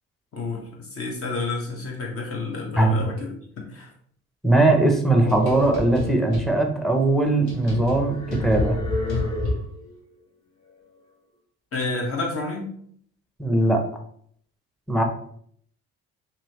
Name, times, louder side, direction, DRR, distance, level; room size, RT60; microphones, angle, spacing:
voice 1, 0.3-3.3 3.7-3.9 11.7-12.7, left 3 dB, 50° left, 0 dB, 1.1 m, -30 dB
voice 2, 4.4-8.8 13.4-13.8 14.9-15.0, right 2 dB, ahead, 3 dB, 0.6 m, -20 dB
sound 1, 5.1-6.5 7.0-7.1 7.5-9.9, left 2 dB, 65° left, 1.4 m, -29 dB
3.0 x 2.7 x 2.9 m, 0.63 s
cardioid pair, 85°, 30 cm